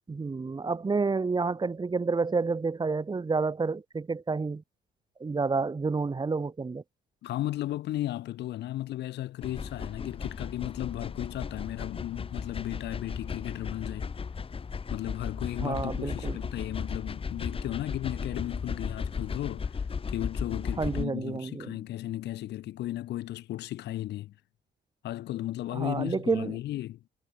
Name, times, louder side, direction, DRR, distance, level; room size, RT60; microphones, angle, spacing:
voice 1, 0.1-4.6 5.2-6.8 15.6-16.4 20.8-21.8 25.7-26.6, right 4 dB, 25° right, 3.4 m, -29 dB
voice 2, 7.2-14.1 14.9-19.8 20.1-24.3 25.0-27.0, left 14 dB, 80° left, 4.5 m, -35 dB
sound 1, 9.4-21.1, left 5 dB, 30° left, 2.4 m, -35 dB
cardioid pair, 105°, 17 cm